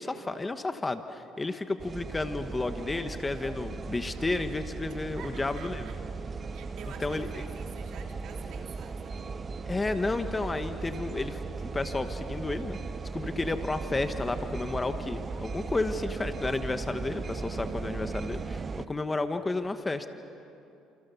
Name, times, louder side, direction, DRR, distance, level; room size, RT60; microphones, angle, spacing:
voice 1, 0.0-5.9 7.0-7.4 9.7-12.8 13.1-20.1, left 3 dB, 15° left, 8 dB, 1.2 m, -32 dB
sound 1, 1.8-18.9, right 4 dB, 30° right, 0.8 m, -37 dB
voice 2, 5.2-6.0 6.5-9.3, right 6 dB, 65° right, 2 dB, 3.4 m, -48 dB
29.0 x 28.0 x 7.0 m, 2.8 s
cardioid pair, 115°, 0 cm